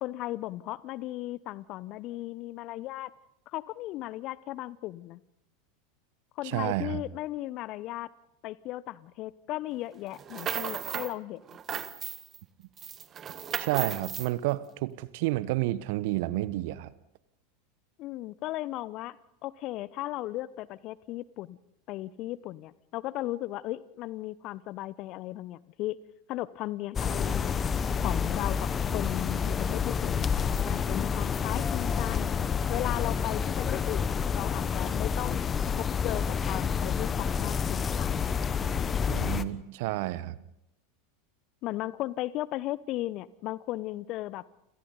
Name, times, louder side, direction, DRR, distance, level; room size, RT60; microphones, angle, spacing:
voice 1, 0.0-3.1 3.5-5.2 6.4-8.1 8.4-11.4 18.0-19.2 19.4-21.6 21.9-26.0 26.3-30.3 30.7-32.3 32.7-35.4 35.8-38.4 41.6-44.4, left 16 dB, 45° left, 19 dB, 0.9 m, -36 dB
voice 2, 6.4-7.0 13.5-16.9 39.1-40.4, right 17 dB, 60° right, 17 dB, 1.1 m, -30 dB
sound 1, 10.1-11.1 11.5-12.4 12.8-14.3, right 8 dB, 30° right, 1.5 m, -35 dB
sound 2, 27.0-39.4, left 6 dB, 25° left, 1.1 m, -29 dB
29.5 x 27.0 x 4.1 m, 0.85 s
figure-of-eight pair, 85°, 0 cm